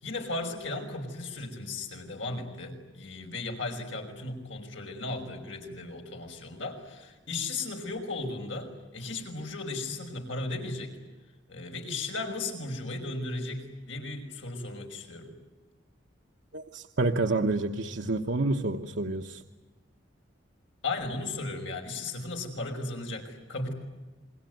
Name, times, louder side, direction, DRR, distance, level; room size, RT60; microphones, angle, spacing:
voice 1, 0.0-11.0 11.5-15.3 20.8-23.7, left 2 dB, 85° left, 3 dB, 5.8 m, -36 dB
voice 2, 16.5-19.4, right 2 dB, 65° right, 3 dB, 1.2 m, -28 dB
28.5 x 21.5 x 9.4 m, 1.2 s
head